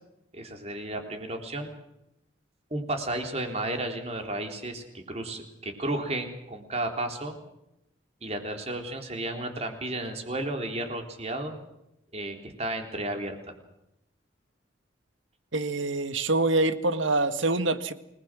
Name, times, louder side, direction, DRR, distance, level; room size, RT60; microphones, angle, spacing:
voice 1, 0.3-1.7 2.7-7.3 8.2-11.5 12.1-13.5, right 1 dB, 35° right, 5 dB, 3.7 m, -33 dB
voice 2, 15.5-17.9, right 2 dB, 80° right, 10 dB, 1.8 m, -25 dB
29.5 x 20.5 x 6.3 m, 0.84 s
head